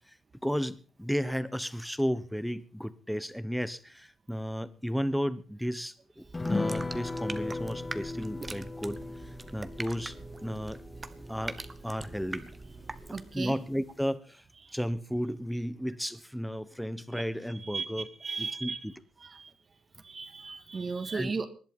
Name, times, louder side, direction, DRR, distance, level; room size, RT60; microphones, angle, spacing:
voice 1, 0.4-10.8 11.3-12.5 13.1-14.4 14.7-18.1 18.4-18.9 21.1-21.3, equal, ahead, 16 dB, 1.2 m, -34 dB
sound 1, 6.2-13.5, right 2 dB, 20° right, 1.4 m, -43 dB
sound 2, 6.3-13.1 13.4-13.5 13.9-14.0, left 3 dB, 20° left, 1.3 m, -37 dB
voice 2, 13.1-13.6 14.6-14.8 17.1-17.2 17.6-17.9 18.2-18.8 19.2-19.5 20.0-21.5, right 4 dB, 35° right, 9 dB, 2.1 m, -36 dB
19.5 x 11.0 x 5.6 m, 0.39 s
cardioid pair, 90°, 0 cm